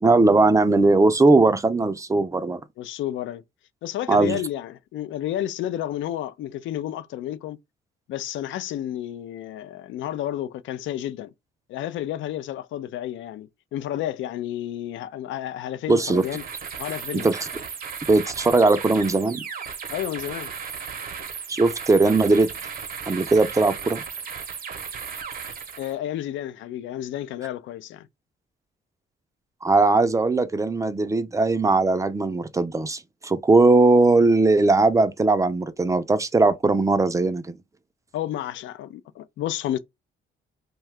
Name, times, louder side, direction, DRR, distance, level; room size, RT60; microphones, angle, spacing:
voice 1, 0.0-2.6 4.1-4.4 15.9-16.2 17.2-17.4 18.1-19.4 21.5-22.5 23.1-24.0 29.6-37.5, right 3 dB, 15° right, 0.4 m, -19 dB
voice 2, 2.8-3.4 3.8-7.6 8.1-11.3 11.7-16.4 16.8-17.3 19.9-20.5 25.8-28.1 38.1-39.8, left 12 dB, 75° left, 0.4 m, -31 dB
sound 1, 16.0-26.0, right 6 dB, 45° right, 0.7 m, -35 dB
2.7 x 2.3 x 3.2 m
cardioid pair, 90°, 20 cm